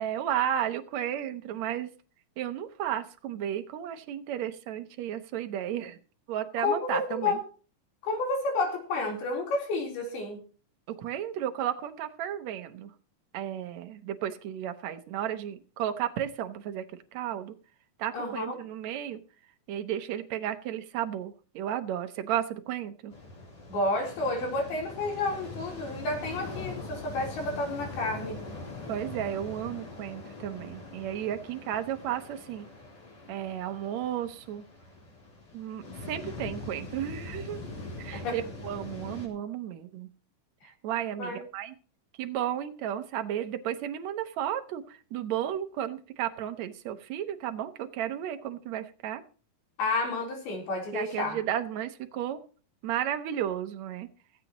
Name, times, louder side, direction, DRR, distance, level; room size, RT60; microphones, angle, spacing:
voice 1, 0.0-1.9 2.4-6.0 6.3-7.4 10.9-12.9 13.3-16.8 17.1-17.5 18.0-19.2 19.7-23.1 28.9-32.7 33.3-34.6 35.5-37.7 38.0-40.1 40.6-41.7 42.1-49.2 50.9-52.4 52.8-54.1, right 10 dB, 70° right, 8 dB, 1.7 m, -33 dB
voice 2, 6.6-7.4 8.0-10.4 18.1-18.5 23.7-28.4 38.1-38.4 41.2-41.4 49.8-51.4, left 2 dB, 75° left, 1 dB, 5.8 m, -30 dB
sound 1, 23.1-39.3, left 3 dB, 45° left, 4.9 m, -42 dB
16.0 x 16.0 x 3.0 m, 0.38 s
omnidirectional pair, 4.5 m